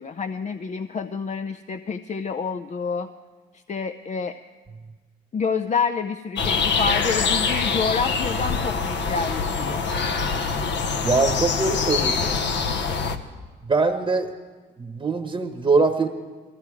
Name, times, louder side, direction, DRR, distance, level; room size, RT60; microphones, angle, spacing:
voice 1, 0.0-3.1 3.7-4.4 5.3-9.8, left 5 dB, 35° left, 7 dB, 0.5 m, -28 dB
sound 1, 6.4-13.2, left 5 dB, 65° left, 1.0 m, -24 dB
voice 2, 11.0-12.3 13.6-14.3 14.8-16.1, right 3 dB, 25° right, 5 dB, 1.1 m, -22 dB
20.5 x 15.0 x 4.8 m, 1.4 s
cardioid pair, 90°, 20 cm